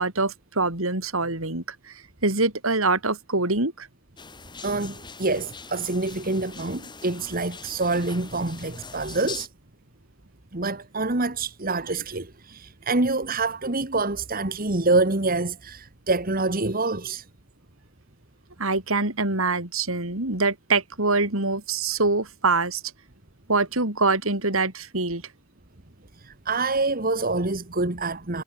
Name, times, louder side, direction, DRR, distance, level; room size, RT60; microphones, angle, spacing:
voice 1, 0.0-3.9 18.6-22.8 23.5-25.2, right 3 dB, 70° right, 4.4 m, -24 dB
sound 1, 4.2-9.5, left 5 dB, 20° left, 5.7 m, -42 dB
voice 2, 4.6-9.5 10.5-17.3 26.2-28.4, right 3 dB, 40° right, 1.7 m, -26 dB
head